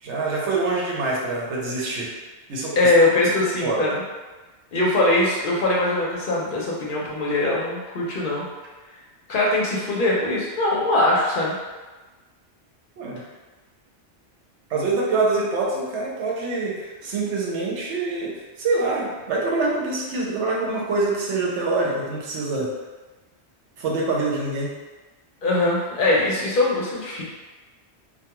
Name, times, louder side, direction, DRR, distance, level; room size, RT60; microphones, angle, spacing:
voice 1, 0.0-2.1 2.5-2.9 3.6-4.0 13.0-13.2 14.7-18.3 18.6-22.7 23.8-24.7, right 3 dB, 85° right, -3 dB, 0.9 m, -25 dB
voice 2, 2.8-4.0 4.7-8.5 9.3-11.5 25.4-27.2, left 2 dB, 60° left, -4 dB, 0.7 m, -21 dB
2.2 x 2.2 x 2.9 m, 1.2 s
omnidirectional pair, 1.2 m